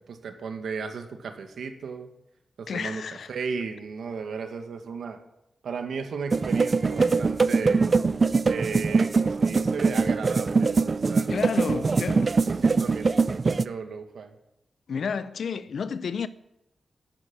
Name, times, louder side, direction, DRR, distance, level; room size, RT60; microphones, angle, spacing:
voice 1, 0.1-2.1 2.6-3.0 3.3-5.2 5.6-7.8 8.5-12.0 12.4-14.3, right 5 dB, 85° right, 1.9 m, -35 dB
voice 2, 2.7-3.3 7.0-7.1 11.3-12.3 14.9-16.3, left 6 dB, 70° left, 0.7 m, -31 dB
sound 1, 6.3-13.6, right 4 dB, 35° right, 0.4 m, -23 dB
12.0 x 9.1 x 8.8 m
wide cardioid pair, 150°, 0 cm